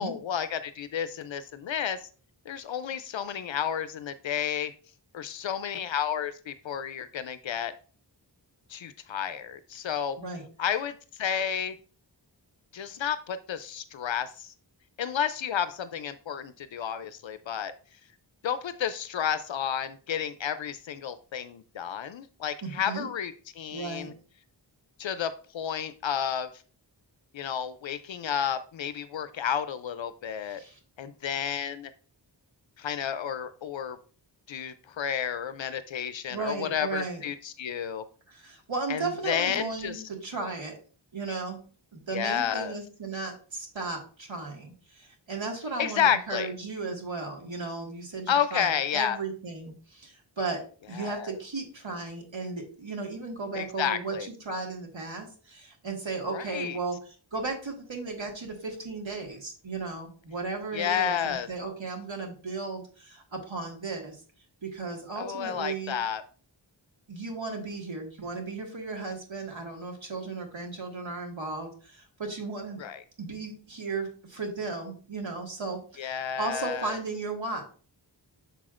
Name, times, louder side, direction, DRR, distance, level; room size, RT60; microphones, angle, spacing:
voice 1, 0.0-2.1 2.5-4.7 5.1-7.7 8.7-10.2 10.6-11.7 12.7-14.5 15.0-17.7 18.4-24.1 25.0-26.5 27.3-30.6 31.0-31.9 32.8-34.0 34.5-38.0 38.9-40.0 42.1-42.7 45.8-46.5 48.3-49.2 50.9-51.4 53.5-54.3 56.3-56.8 60.7-61.5 65.2-66.2 72.8-73.0 76.0-77.0, left 8 dB, 80° left, 0.5 m, -31 dB
voice 2, 22.6-23.1 23.7-24.1 30.4-30.8 36.3-37.2 38.3-40.8 41.1-41.6 41.9-57.0 57.3-64.2 64.6-65.9 67.1-72.8 73.2-77.6, right 3 dB, 90° right, 1.8 m, -35 dB
6.8 x 5.9 x 2.4 m
wide cardioid pair, 60°, 45 cm